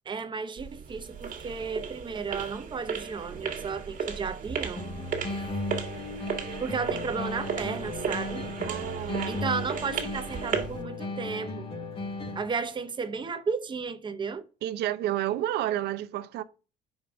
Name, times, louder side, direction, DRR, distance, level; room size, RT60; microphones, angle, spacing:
voice 1, 0.0-4.9 6.6-8.5 9.3-11.7 12.3-14.5, right 5 dB, 30° right, 0.9 m, -33 dB
sound 1, 0.6-10.8, right 6 dB, 50° right, 1.8 m, -35 dB
sound 2, 4.8-12.7, left 2 dB, 35° left, 1.4 m, -36 dB
voice 2, 8.6-9.4 14.6-16.4, right 13 dB, 75° right, 0.7 m, -30 dB
5.2 x 4.9 x 6.1 m
cardioid pair, 110°, 17 cm